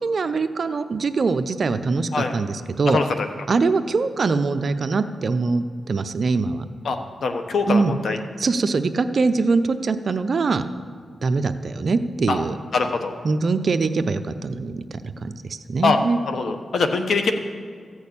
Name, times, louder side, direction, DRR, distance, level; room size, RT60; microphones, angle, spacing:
voice 1, 0.0-3.0 3.5-6.6 7.7-7.9 8.4-10.7 11.2-12.6 13.2-16.2, right 4 dB, 55° right, 10 dB, 0.6 m, -23 dB
voice 2, 2.9-3.3 6.8-7.0 7.2-8.2 12.3-12.4 12.7-13.1 15.8-16.0 16.3-17.3, left 4 dB, 75° left, 6 dB, 1.1 m, -22 dB
14.5 x 6.4 x 8.6 m, 2.1 s
cardioid pair, 90°, 0 cm